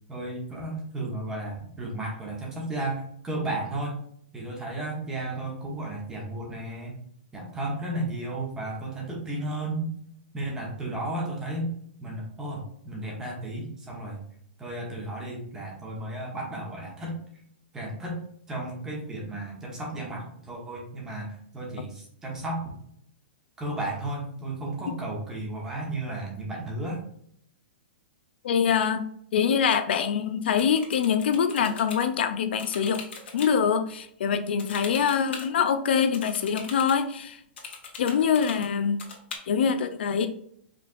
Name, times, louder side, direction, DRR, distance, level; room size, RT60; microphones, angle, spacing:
voice 1, 0.1-4.0 4.3-7.0 7.3-9.9 10.3-11.7 12.0-14.2 14.6-17.2 17.7-18.2 18.5-22.6 23.6-27.0, right 1 dB, 10° right, -2 dB, 1.0 m, -33 dB
voice 2, 28.4-29.0 29.3-33.0 33.3-37.3 38.0-39.0 39.5-40.3, left 7 dB, 65° left, 9 dB, 0.5 m, -24 dB
sound 1, 30.5-32.0 32.6-33.5 34.6-35.5 36.1-37.0 37.6-38.7 39.0-39.4, left 5 dB, 80° left, 1.5 m, -40 dB
4.9 x 3.3 x 2.5 m, 0.66 s
hypercardioid pair, 165°, 6 cm